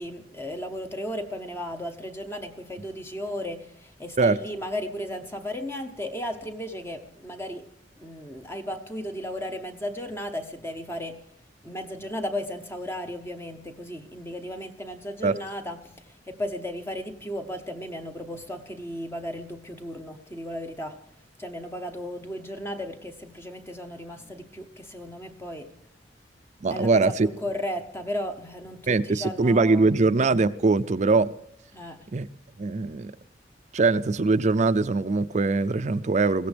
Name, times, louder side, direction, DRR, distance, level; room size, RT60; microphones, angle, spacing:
voice 1, 0.0-11.3 11.6-21.0 21.4-25.8 26.7-29.9 31.7-32.1, left 1 dB, 15° left, 0.8 m, -35 dB
voice 2, 26.6-27.3 28.9-31.3 32.1-32.3 32.6-33.1 33.7-36.5, right 3 dB, 40° right, 0.5 m, -22 dB
21.0 x 16.0 x 3.4 m
head